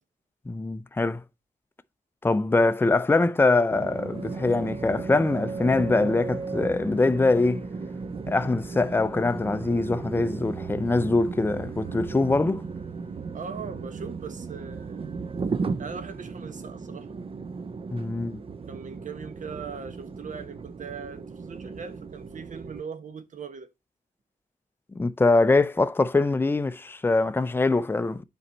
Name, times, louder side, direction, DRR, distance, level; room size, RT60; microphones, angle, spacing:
voice 1, 0.5-1.2 2.2-7.7 8.3-12.7 17.9-18.4 24.9-28.2, left 3 dB, 15° left, 0.5 m, -23 dB
sound 1, 3.7-22.8, right 4 dB, 35° right, 0.5 m, -35 dB
voice 2, 13.3-15.1 15.8-17.1 18.7-23.7, right 6 dB, 55° right, 1.2 m, -40 dB
9.4 x 4.4 x 4.0 m
wide cardioid pair, 105°, 15 cm